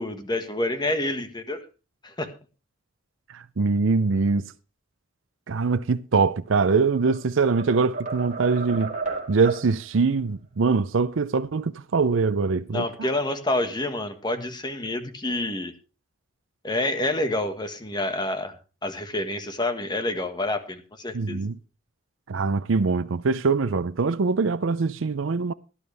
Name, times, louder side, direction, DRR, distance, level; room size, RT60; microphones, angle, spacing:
voice 1, 0.0-1.6 2.0-2.3 12.7-15.7 16.6-18.5 18.8-21.4, left 2 dB, 20° left, 1.5 m, -28 dB
voice 2, 3.3-4.4 5.5-8.9 9.3-12.9 21.1-21.6 22.3-25.5, right 4 dB, 80° right, 0.6 m, -23 dB
sound 1, 6.7-7.2 7.6-9.7, right 4 dB, 40° right, 4.0 m, -32 dB
17.5 x 11.5 x 3.4 m
head